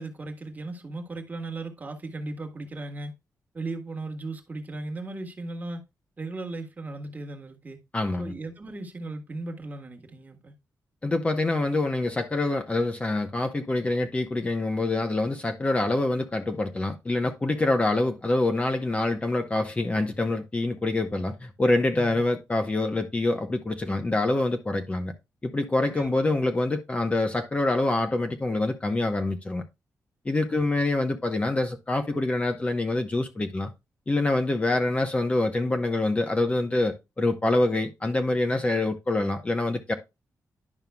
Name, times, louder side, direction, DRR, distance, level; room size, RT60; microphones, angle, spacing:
voice 1, 0.0-3.1 3.5-5.8 6.2-7.8 8.2-10.5 21.9-22.2 25.9-26.4 30.5-30.7, right 2 dB, 25° right, 1.5 m, -37 dB
voice 2, 7.9-8.3 11.0-25.1 25.4-29.6 30.2-33.7 34.1-39.9, left 2 dB, 20° left, 0.9 m, -26 dB
11.0 x 5.5 x 2.3 m
wide cardioid pair, 135°, 6 cm